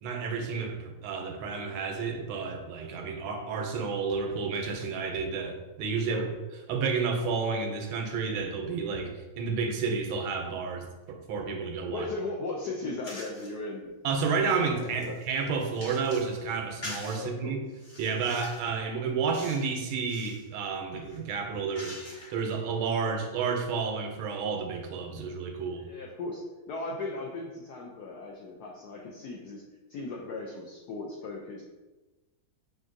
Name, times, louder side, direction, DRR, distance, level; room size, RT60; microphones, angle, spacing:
voice 1, 0.0-6.2 6.7-12.1 14.0-17.6 18.0-25.8, right 5 dB, 80° right, 4 dB, 1.4 m, -31 dB
voice 2, 11.9-13.9 14.6-15.2 17.1-17.6 25.8-29.6 29.9-31.6, left 3 dB, 85° left, -1 dB, 0.8 m, -37 dB
sound 1, 13.0-13.5 14.1-16.3 16.8-17.2 17.7-18.7 19.3-19.7 20.0-20.4 21.0-22.5, left 1 dB, 50° left, 0.8 m, -44 dB
5.9 x 2.6 x 2.5 m, 1.1 s
omnidirectional pair, 2.2 m